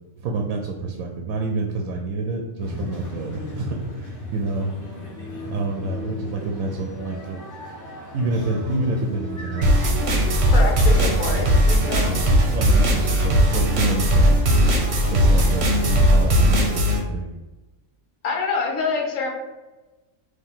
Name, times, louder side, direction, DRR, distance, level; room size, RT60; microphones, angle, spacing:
voice 1, 0.2-4.7 5.5-7.4 8.1-9.8 12.0-12.2 12.5-14.4 15.1-17.3, right 3 dB, 85° right, 2 dB, 1.0 m, -28 dB
sound 1, 2.6-16.6, left 1 dB, 15° left, 1.0 m, -36 dB
sound 2, 9.6-17.0, equal, 55° right, 1.0 m, -18 dB
voice 2, 10.5-12.1 18.2-19.3, left 4 dB, 70° left, 1 dB, 1.3 m, -26 dB
4.4 x 2.8 x 3.8 m, 1.1 s
omnidirectional pair, 1.4 m